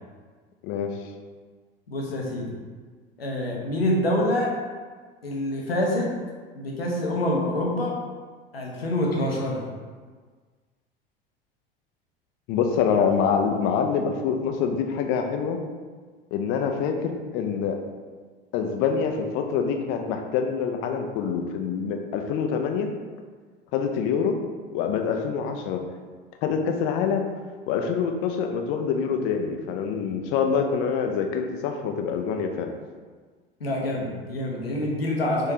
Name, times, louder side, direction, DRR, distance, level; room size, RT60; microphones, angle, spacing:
voice 1, 0.6-1.0 12.5-15.6 16.3-17.8 18.5-22.9 23.7-24.4 24.7-25.8 26.4-27.3 27.7-32.7, left 6 dB, 45° left, 4 dB, 0.5 m, -25 dB
voice 2, 1.9-2.5 3.2-4.5 5.2-6.1 6.5-8.0 8.5-9.6 33.6-35.5, left 1 dB, 80° left, -2 dB, 0.8 m, -26 dB
3.7 x 3.6 x 2.8 m, 1.5 s
figure-of-eight pair, 75°, 29 cm